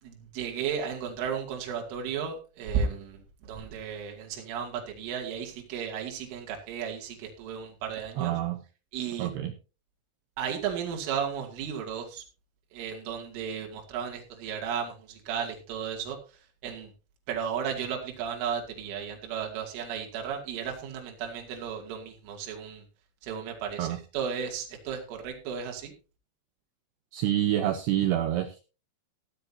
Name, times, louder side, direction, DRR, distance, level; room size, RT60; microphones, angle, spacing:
voice 1, 0.0-8.3 8.9-9.3 10.4-12.2 12.7-16.2 16.6-16.9 17.3-22.8 23.2-23.9 24.1-25.9, right 7 dB, 70° right, 2 dB, 4.8 m, -34 dB
voice 2, 8.2-8.6 9.2-9.5 23.8-24.0 27.1-28.6, right 12 dB, 90° right, 9 dB, 2.3 m, -27 dB
15.5 x 13.0 x 2.8 m, 0.32 s
omnidirectional pair, 6.0 m